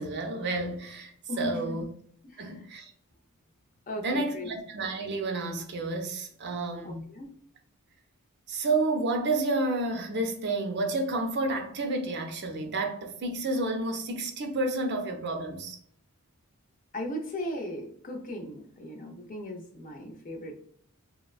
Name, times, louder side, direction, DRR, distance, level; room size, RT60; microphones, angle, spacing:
voice 1, 0.0-1.8 2.4-2.9 3.9-7.1 8.5-15.8, right 2 dB, 50° right, 0.5 m, -30 dB
voice 2, 1.3-1.8 2.3-2.6 3.9-4.5 6.8-7.3 16.9-20.6, left 1 dB, 40° left, 0.5 m, -37 dB
3.4 x 2.1 x 2.3 m
head